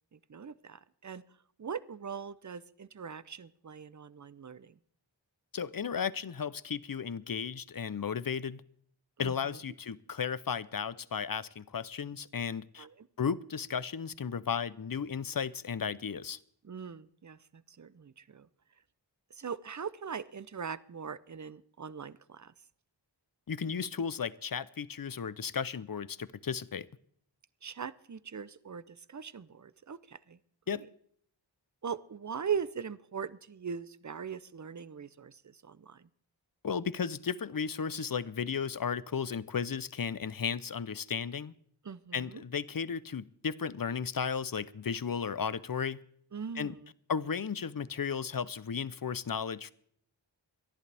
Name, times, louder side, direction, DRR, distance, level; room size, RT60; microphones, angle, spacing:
voice 1, 0.1-1.2 1.6-4.7 9.2-9.3 12.8-12.9 16.6-18.5 19.4-22.5 27.6-30.4 31.8-35.4 35.6-36.0 41.8-42.4 46.3-46.9, right 6 dB, 40° right, 18 dB, 0.6 m, -40 dB
voice 2, 5.5-8.6 9.2-12.9 13.2-16.4 23.5-26.9 30.7-30.8 36.6-41.5 42.1-46.0 46.6-46.8 47.1-49.7, left 6 dB, 50° left, 18 dB, 0.6 m, -34 dB
25.0 x 11.0 x 3.4 m, 0.64 s
wide cardioid pair, 45°, 46 cm